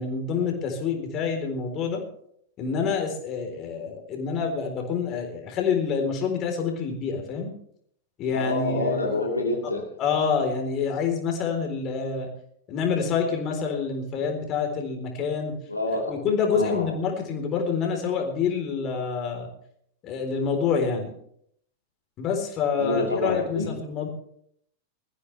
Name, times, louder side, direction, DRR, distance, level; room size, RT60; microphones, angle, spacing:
voice 1, 0.0-2.0 2.6-7.5 8.2-9.2 10.0-12.3 12.7-15.5 16.1-19.5 20.0-21.1 22.2-24.1, left 5 dB, 35° left, 3 dB, 4.0 m, -27 dB
voice 2, 8.3-9.8 15.7-16.1 16.5-16.9 22.8-23.7, left 2 dB, 85° left, 0 dB, 2.6 m, -27 dB
22.0 x 14.5 x 3.4 m, 0.68 s
figure-of-eight pair, 90°, 0 cm